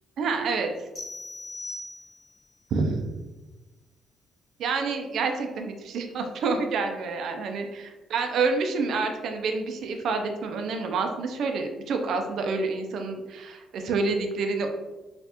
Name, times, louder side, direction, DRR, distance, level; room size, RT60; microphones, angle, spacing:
voice 1, 0.2-0.7 2.7-3.0 4.6-14.7, right 4 dB, 70° right, 4 dB, 0.4 m, -28 dB
sound 1, 1.0-2.5, left 2 dB, 45° left, 1.4 m, -39 dB
3.3 x 2.4 x 2.8 m, 1.1 s
cardioid pair, 90°, 0 cm